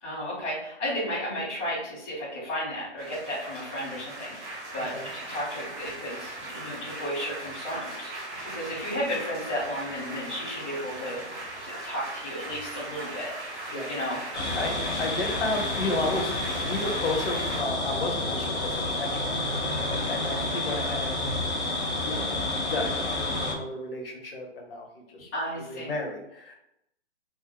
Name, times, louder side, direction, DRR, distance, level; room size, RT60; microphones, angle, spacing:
voice 1, 0.0-11.2 11.6-14.2 20.1-20.3 25.3-25.9, equal, 10° left, -10 dB, 0.5 m, -34 dB
sound 1, 3.0-17.6, right 2 dB, 25° right, 0.8 m, -39 dB
voice 2, 13.7-14.2 14.6-16.3 16.6-19.4 19.9-21.4 22.0-22.3 22.7-25.3 25.6-26.5, left 2 dB, 55° left, 2 dB, 1.0 m, -33 dB
sound 2, 14.3-23.5, left 2 dB, 70° left, 1.2 m, -29 dB
3.6 x 2.5 x 3.5 m, 0.83 s
hypercardioid pair, 165°, 35 cm